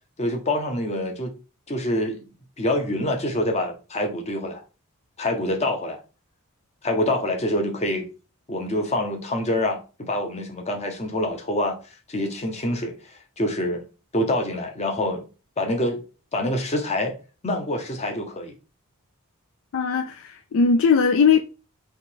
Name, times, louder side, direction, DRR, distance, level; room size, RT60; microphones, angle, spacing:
voice 1, 0.2-1.3 1.7-2.2 2.6-4.6 5.2-6.0 6.8-8.1 8.5-11.8 12.1-12.9 13.4-13.8 14.1-15.3 15.6-16.0 16.3-17.1 17.4-18.5, left 1 dB, 30° left, 0.9 m, -26 dB
voice 2, 19.7-21.4, left 5 dB, 60° left, 0.4 m, -19 dB
3.6 x 2.9 x 4.5 m
head